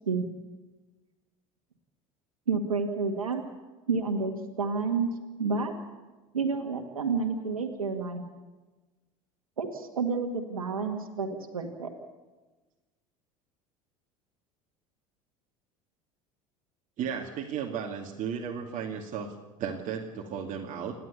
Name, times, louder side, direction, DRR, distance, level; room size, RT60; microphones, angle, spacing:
voice 1, 2.5-3.4 3.9-5.1 5.4-5.7 6.3-8.2 9.6-11.9, right 4 dB, 90° right, 3 dB, 2.0 m, -30 dB
voice 2, 17.0-20.9, right 7 dB, 45° right, 0 dB, 2.5 m, -35 dB
28.5 x 11.0 x 8.5 m, 1.2 s
hypercardioid pair, 75°, 18 cm